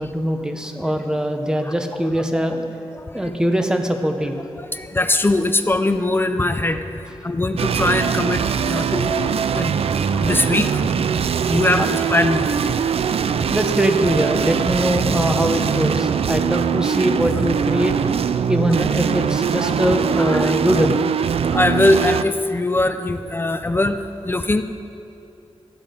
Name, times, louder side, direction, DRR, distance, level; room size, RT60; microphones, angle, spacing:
voice 1, 0.0-2.6 3.1-4.3 11.8-11.9 13.5-17.9 18.5-21.0, equal, 5° right, 5 dB, 0.9 m, -22 dB
voice 2, 2.1-2.5 2.9-3.3 4.6-9.7 10.1-10.9 11.5-12.5 17.8-17.9 20.2-20.6 21.5-24.0 24.2-24.6, left 2 dB, 20° left, 8 dB, 0.5 m, -21 dB
sound 1, 7.6-22.2, right 7 dB, 75° right, 0.4 m, -21 dB
14.5 x 9.6 x 5.2 m, 2.8 s
wide cardioid pair, 135°, 10 cm